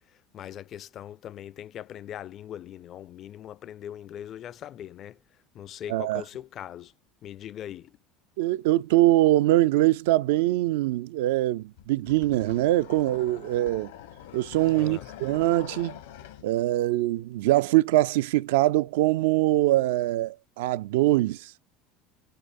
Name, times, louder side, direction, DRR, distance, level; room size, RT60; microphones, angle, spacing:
voice 1, 0.3-5.2 5.5-6.9 7.2-8.0 14.8-15.1, left 10 dB, 50° left, 0.4 m, -40 dB
voice 2, 5.9-6.2 8.4-13.9 14.3-15.9 16.4-21.5, right 16 dB, 75° right, 0.4 m, -23 dB
sound 1, 11.8-16.5, left 11 dB, 75° left, 1.1 m, -44 dB
7.5 x 2.6 x 5.3 m
hypercardioid pair, 80°, 0 cm